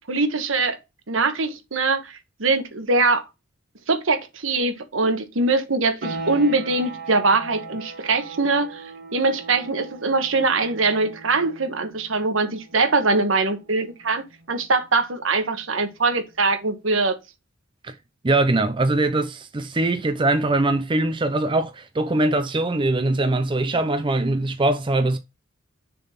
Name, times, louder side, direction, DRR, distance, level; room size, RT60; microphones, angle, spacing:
voice 1, 0.1-0.8 1.1-3.2 3.9-8.8 9.1-17.2, right 3 dB, 75° right, 1.3 m, -22 dB
sound 1, 6.0-16.5, right 3 dB, 55° right, 2.8 m, -40 dB
voice 2, 18.2-25.2, right 2 dB, 25° right, 0.5 m, -22 dB
6.7 x 4.0 x 4.2 m
head